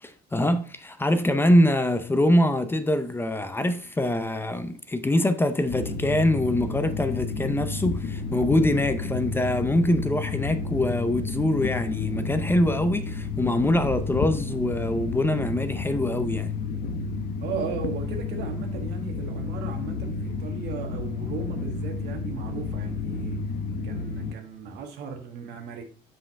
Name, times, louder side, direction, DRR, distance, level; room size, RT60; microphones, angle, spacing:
voice 1, 0.0-16.6, left 1 dB, 15° left, 0.5 m, -24 dB
sound 1, 5.7-24.3, left 4 dB, 70° left, 0.8 m, -31 dB
voice 2, 17.4-23.4 23.8-25.8, right 6 dB, 80° right, 1.3 m, -36 dB
5.5 x 5.1 x 3.5 m
cardioid pair, 110°, 17 cm